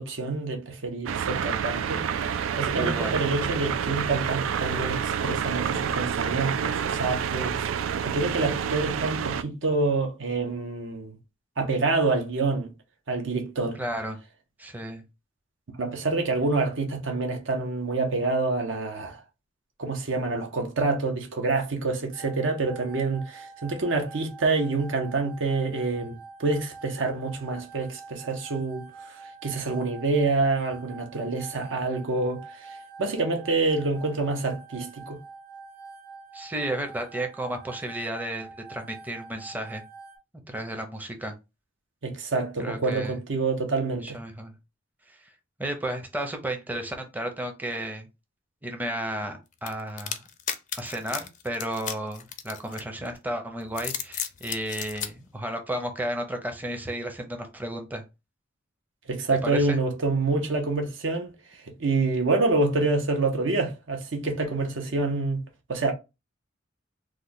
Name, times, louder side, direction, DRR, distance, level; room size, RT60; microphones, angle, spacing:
voice 1, 0.0-2.0 2.6-7.6 8.0-11.2 11.6-12.7 13.1-13.8 15.8-19.2 19.8-28.9 29.4-32.4 33.0-35.2 42.0-44.2 59.1-61.3 61.8-65.4 65.7-65.9, right 3 dB, 70° right, 0.8 m, -27 dB
sound 1, 1.1-9.4, right 7 dB, 85° right, 0.3 m, -28 dB
voice 2, 2.8-3.1 13.8-14.2 14.6-15.0 36.3-39.8 40.5-41.4 42.6-43.2 43.9-44.5 45.6-48.1 48.6-50.2 50.8-58.0 59.4-59.8, right 1 dB, 10° right, 0.6 m, -33 dB
sound 2, 22.1-40.2, right 4 dB, 45° right, 1.5 m, -46 dB
sound 3, 49.7-53.1 53.6-55.1, left 9 dB, 40° left, 0.4 m, -34 dB
3.1 x 2.2 x 3.8 m
head